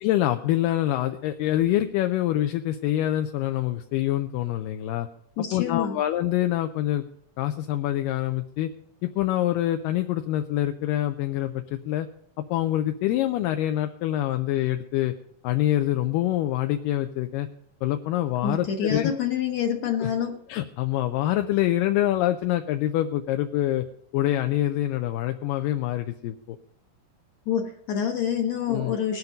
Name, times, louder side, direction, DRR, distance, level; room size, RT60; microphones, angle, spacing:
voice 1, 0.0-5.1 5.5-7.0 7.4-8.7 9.0-12.1 12.5-15.1 15.4-17.5 17.8-19.1 20.0-20.1 20.5-23.9 24.1-26.6 28.7-29.0, left 13 dB, 80° left, 7 dB, 2.2 m, -25 dB
voice 2, 5.4-6.0 18.4-20.4 27.5-29.2, left 8 dB, 65° left, 2 dB, 1.9 m, -27 dB
18.5 x 8.2 x 5.3 m, 0.71 s
omnidirectional pair, 3.9 m